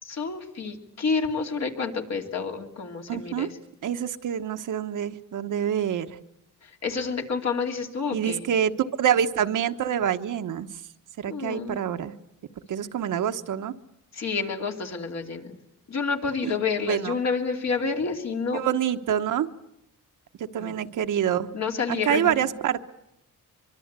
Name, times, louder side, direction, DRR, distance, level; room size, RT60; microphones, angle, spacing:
voice 1, 0.0-3.5 6.6-8.4 11.2-11.8 14.1-15.5 15.9-18.6 20.6-20.7 21.5-22.3, left 5 dB, 55° left, 3 dB, 3.0 m, -29 dB
voice 2, 3.1-3.5 3.8-6.2 8.1-10.7 11.2-12.1 12.7-13.7 16.4-16.5 16.9-17.1 18.5-19.5 20.4-21.5 21.9-22.8, right 9 dB, 65° right, 8 dB, 1.2 m, -26 dB
24.0 x 24.0 x 8.2 m, 0.85 s
wide cardioid pair, 150°, 33 cm